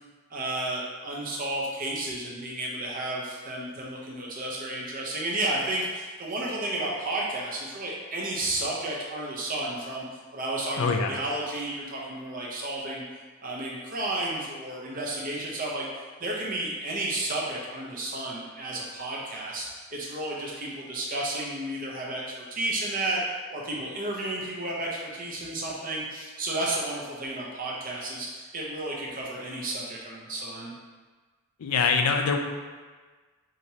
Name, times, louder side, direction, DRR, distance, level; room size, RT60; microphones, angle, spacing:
voice 1, 0.3-10.0 10.3-13.0 13.4-15.9 16.2-23.2 23.5-30.7, right 1 dB, 40° right, -3 dB, 0.7 m, -32 dB
voice 2, 10.8-11.2 31.6-32.4, left 5 dB, 85° left, 3 dB, 0.4 m, -24 dB
5.1 x 2.9 x 2.8 m, 1.4 s
head